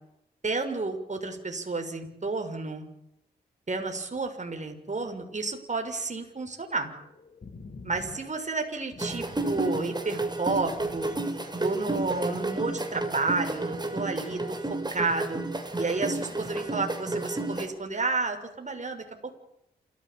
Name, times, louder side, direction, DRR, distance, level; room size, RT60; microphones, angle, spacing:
voice 1, 0.4-2.9 3.7-6.9 7.8-11.1 11.6-14.6 14.9-15.4 15.7-19.1, right 3 dB, 40° right, 5 dB, 6.4 m, -31 dB
sound 1, 6.9-12.2, left 3 dB, 50° left, 4.5 m, -47 dB
sound 2, 9.0-17.7, right 2 dB, 25° right, 7.0 m, -32 dB
28.0 x 16.0 x 8.8 m, 0.80 s
supercardioid pair, 40°, 18 cm